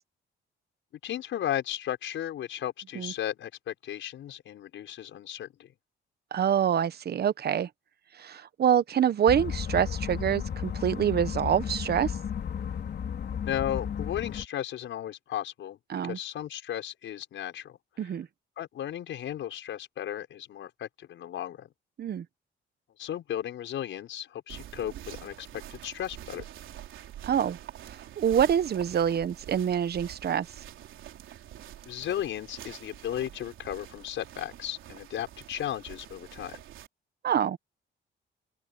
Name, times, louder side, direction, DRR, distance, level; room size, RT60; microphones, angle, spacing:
voice 1, 1.0-5.7 13.4-15.8 16.0-18.1 18.6-21.7 23.0-26.4 31.9-36.6, left 11 dB, 75° left, 5.9 m, -35 dB
voice 2, 6.3-7.7 8.2-12.1 15.9-16.2 18.0-18.3 22.0-22.2 27.2-27.6 28.2-30.5 37.2-37.6, right 9 dB, 55° right, 1.2 m, -26 dB
sound 1, 9.3-14.5, left 8 dB, 55° left, 4.3 m, -33 dB
sound 2, 24.5-36.9, right 12 dB, 80° right, 3.9 m, -46 dB
open air
cardioid pair, 90°, 20 cm